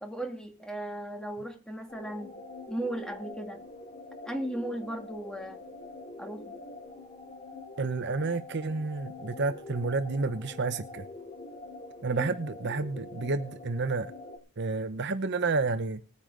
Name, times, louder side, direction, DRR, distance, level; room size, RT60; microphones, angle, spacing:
voice 1, 0.0-2.3 2.7-3.6 4.3-5.6 6.2-6.5 12.1-12.4, right 1 dB, 5° left, 2.1 m, -36 dB
sound 1, 1.9-14.4, left 2 dB, 30° left, 3.2 m, -45 dB
voice 2, 7.8-11.1 12.0-14.1 14.6-16.0, right 3 dB, 55° right, 0.8 m, -30 dB
19.5 x 9.7 x 3.8 m
head